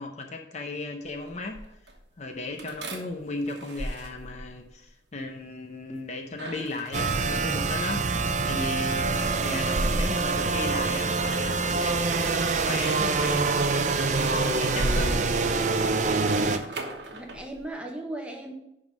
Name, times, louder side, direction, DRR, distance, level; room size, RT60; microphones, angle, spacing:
voice 1, 0.0-1.6 2.2-8.1 8.4-15.3, left 2 dB, 40° left, 3 dB, 0.7 m, -36 dB
sound 1, 1.0-2.0 2.6-4.8 6.3-7.6 8.3-10.9 11.2-12.7 13.0-13.4 13.8-17.7, right 1 dB, 70° right, 1.1 m, -36 dB
sound 2, 6.9-16.6, right 4 dB, 40° right, 0.5 m, -25 dB
voice 2, 17.1-18.5, right 1 dB, 5° right, 1 dB, 1.0 m, -39 dB
11.0 x 3.7 x 5.2 m, 0.84 s
head